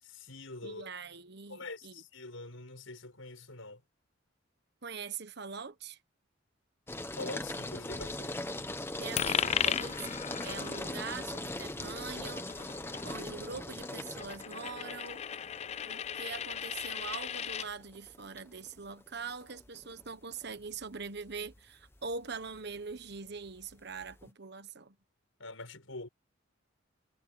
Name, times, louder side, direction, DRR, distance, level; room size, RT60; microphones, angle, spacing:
voice 1, 0.0-0.9 1.5-3.8 7.1-8.5 25.4-26.1, left 2 dB, 85° left, 6.2 m, -44 dB
voice 2, 0.6-2.0 4.8-6.0 9.0-10.2 10.4-12.7 13.0-15.2 15.9-25.0, right 5 dB, 55° right, 1.3 m, -43 dB
sound 1, 6.9-24.3, left 1 dB, 10° left, 1.1 m, -41 dB
Coin (dropping), 9.2-17.7, left 9 dB, 30° left, 0.3 m, -37 dB
head